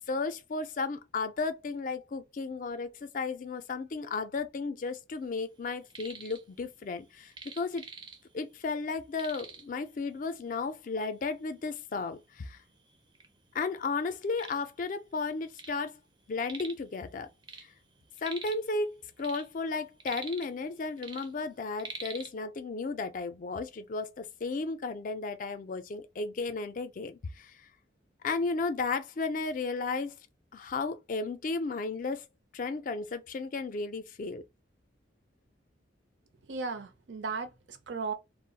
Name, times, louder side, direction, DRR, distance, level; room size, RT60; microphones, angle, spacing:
voice 1, 0.1-7.9 8.3-12.6 13.5-16.0 16.3-17.3 17.6-17.7 18.2-27.7 28.2-30.2 30.5-32.2 32.5-34.4, left 4 dB, 45° left, 0.3 m, -34 dB
sound 1, 5.7-6.4 6.7-8.5 8.8-8.9 9.1-9.8 10.6-10.7 11.2-11.3 12.0-12.1 12.4-13.3 13.7-15.8 16.1-16.9 17.2-18.7 19.1-20.7 21.0-22.3, right 4 dB, 25° right, 0.4 m, -45 dB
voice 2, 36.5-38.1, right 4 dB, 70° right, 0.6 m, -36 dB
2.3 x 2.0 x 3.8 m
head